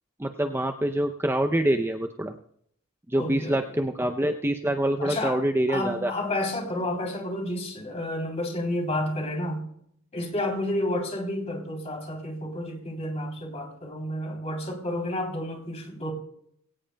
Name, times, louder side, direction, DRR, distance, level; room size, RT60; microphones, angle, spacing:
voice 1, 0.2-2.4 3.1-6.1, right 1 dB, 10° right, 5 dB, 0.5 m, -25 dB
voice 2, 3.1-3.8 5.0-5.4 5.7-9.7 10.1-16.1, left 1 dB, 30° left, 2 dB, 3.2 m, -30 dB
22.0 x 17.5 x 2.2 m, 0.68 s
head